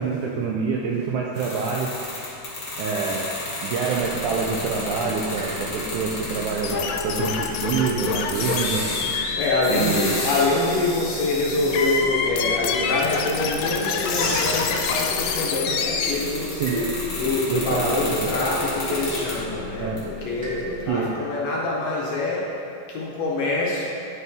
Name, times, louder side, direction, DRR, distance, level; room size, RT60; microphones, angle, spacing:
voice 1, 0.0-1.9 2.8-3.3 3.6-8.9 9.7-10.3 16.6-16.8 17.5-18.0 19.8-20.0 20.9-21.3, right 5 dB, 80° right, -2 dB, 1.8 m, -26 dB
sound 1, 1.3-6.7 8.2-12.0 13.9-15.1 15.7-19.5 20.0-20.1, left 2 dB, 50° left, 1.2 m, -32 dB
sound 2, 3.9-20.9, equal, 50° right, 1.2 m, -36 dB
sound 3, 6.6-16.1, left 6 dB, 85° left, 2.3 m, -27 dB
voice 2, 9.4-16.5 17.2-22.5 22.9-23.8, left 2 dB, 70° left, -5 dB, 1.6 m, -25 dB
10.5 x 4.3 x 3.5 m, 2.6 s
omnidirectional pair, 3.9 m